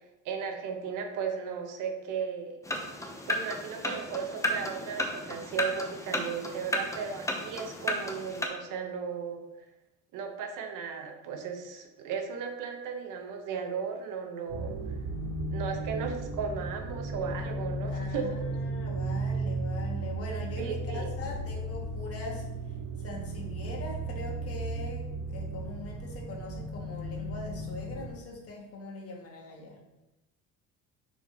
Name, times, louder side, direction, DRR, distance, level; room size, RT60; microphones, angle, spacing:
voice 1, 0.2-2.6 3.3-9.4 10.1-14.8 15.5-18.4 20.6-21.1, right 6 dB, 65° right, 4 dB, 1.1 m, -36 dB
sound 1, 2.7-8.5, left 1 dB, 10° left, 0.7 m, -34 dB
sound 2, 14.5-28.1, right 2 dB, 85° right, 1.9 m, -35 dB
voice 2, 17.9-22.4 23.0-29.8, left 2 dB, 40° left, -1 dB, 1.7 m, -42 dB
6.0 x 4.7 x 4.1 m, 0.98 s
cardioid pair, 125°, 35 cm